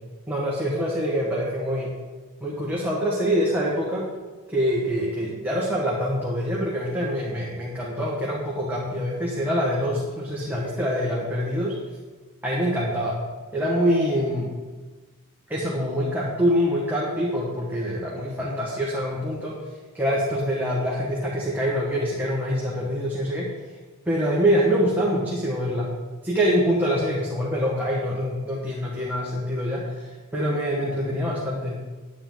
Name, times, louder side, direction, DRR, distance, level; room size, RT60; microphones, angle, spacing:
voice 1, 0.3-1.9 2.4-4.1 4.5-11.8 12.4-13.2 13.5-14.5 15.5-19.5 19.9-23.5 24.0-25.9 26.2-31.8, equal, 10° right, -5 dB, 1.5 m, -25 dB
10.0 x 9.9 x 3.9 m, 1.3 s
head